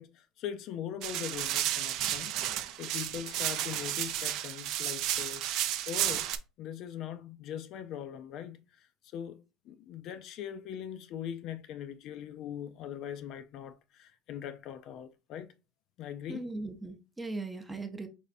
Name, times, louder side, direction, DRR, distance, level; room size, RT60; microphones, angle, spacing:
voice 1, 0.0-2.3 2.8-5.5 5.9-6.3 6.6-8.9 9.1-15.5 16.0-16.5, left 9 dB, 45° left, 0.3 m, -41 dB
sound 1, 1.0-6.4, right 12 dB, 55° right, 0.4 m, -32 dB
voice 2, 16.3-18.1, right 2 dB, 10° right, 0.6 m, -39 dB
4.9 x 3.3 x 2.5 m
cardioid pair, 165°, 0 cm